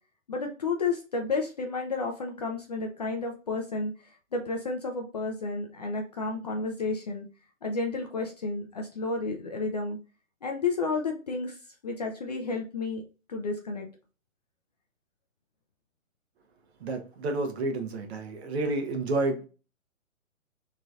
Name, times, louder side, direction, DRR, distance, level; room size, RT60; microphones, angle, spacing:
voice 1, 0.3-7.3 7.6-10.0 10.4-11.6 11.8-13.0 13.3-13.9, left 3 dB, 35° left, 2 dB, 0.4 m, -31 dB
voice 2, 16.8-19.4, right 2 dB, 50° right, 4 dB, 1.0 m, -30 dB
3.8 x 3.1 x 2.4 m, 0.34 s
hypercardioid pair, 135°, 40 cm